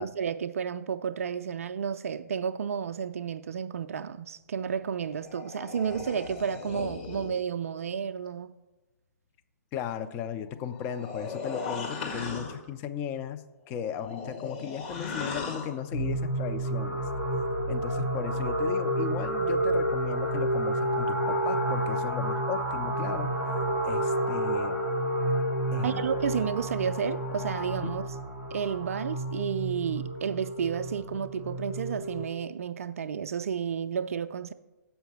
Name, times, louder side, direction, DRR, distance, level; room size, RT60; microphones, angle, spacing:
voice 1, 0.0-8.5 25.8-28.0 28.5-34.5, right 7 dB, 55° right, 0.4 m, -31 dB
sound 1, 4.8-7.4 10.5-12.7 13.7-15.8, left 4 dB, 40° left, 1.7 m, -38 dB
voice 2, 9.7-17.0 17.7-23.3 23.8-24.8 25.7-26.0 27.8-27.9, left 8 dB, 20° left, 0.4 m, -36 dB
sound 2, 15.9-32.3, right 1 dB, 90° left, 1.6 m, -30 dB
7.7 x 5.7 x 6.8 m
figure-of-eight pair, 130°, 9 cm